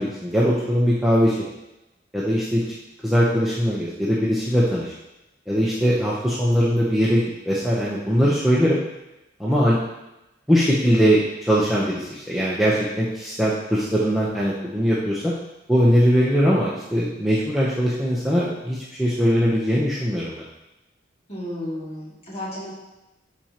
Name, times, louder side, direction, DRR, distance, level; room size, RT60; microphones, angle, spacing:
voice 1, 0.0-1.4 2.1-2.6 3.0-4.9 5.5-8.8 9.4-9.8 10.5-15.3 15.7-20.4, equal, ahead, -8 dB, 0.8 m, -21 dB
voice 2, 21.3-22.7, left 1 dB, 35° left, -8 dB, 2.5 m, -33 dB
12.0 x 4.5 x 3.0 m, 0.97 s
head